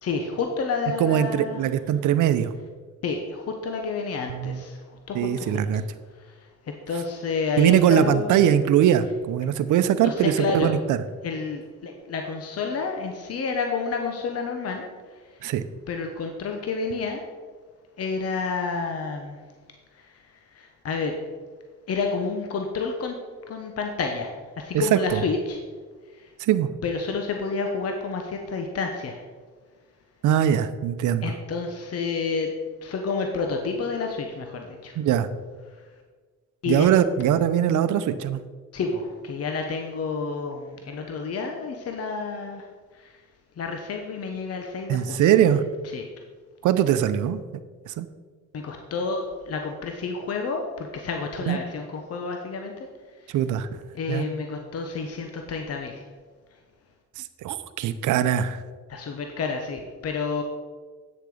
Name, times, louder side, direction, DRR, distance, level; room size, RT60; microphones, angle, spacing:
voice 1, 0.0-1.6 3.0-5.6 6.1-8.5 10.0-10.8 11.2-14.8 15.1-15.4 15.9-17.2 18.0-19.4 19.9-21.2 21.9-23.2 23.5-25.6 26.0-26.3 26.8-29.2 31.2-32.5 32.8-35.0 35.7-35.8 36.6-36.9 38.7-42.7 42.9-43.2 43.6-45.3 45.8-46.1 48.5-52.9 53.1-53.4 53.9-56.1 56.5-56.6 58.9-60.4, left 4 dB, 55° left, 3 dB, 1.1 m, -30 dB
voice 2, 1.0-2.5 4.3-4.6 5.1-5.8 7.6-11.0 15.4-15.6 24.7-25.2 26.4-26.7 30.2-31.3 35.0-35.3 36.7-38.4 44.9-45.6 46.6-47.4 47.9-48.1 51.5-51.6 53.3-53.7 54.1-54.3 57.2-58.6, right 10 dB, 75° right, 12 dB, 0.7 m, -21 dB
9.1 x 6.7 x 4.9 m, 1.5 s
cardioid pair, 90°, 30 cm